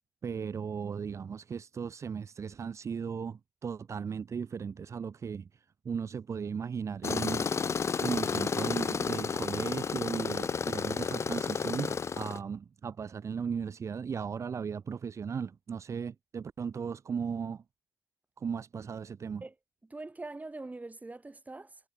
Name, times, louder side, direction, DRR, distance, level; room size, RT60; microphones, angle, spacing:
voice 1, 0.2-5.5 5.8-7.5 8.0-17.6 18.4-19.4, right 6 dB, 55° right, 0.9 m, -36 dB
Tools, 7.0-12.4, left 6 dB, 55° left, 0.8 m, -32 dB
voice 2, 19.9-21.8, right 2 dB, 25° right, 7.7 m, -43 dB
cardioid pair, 55°, 6 cm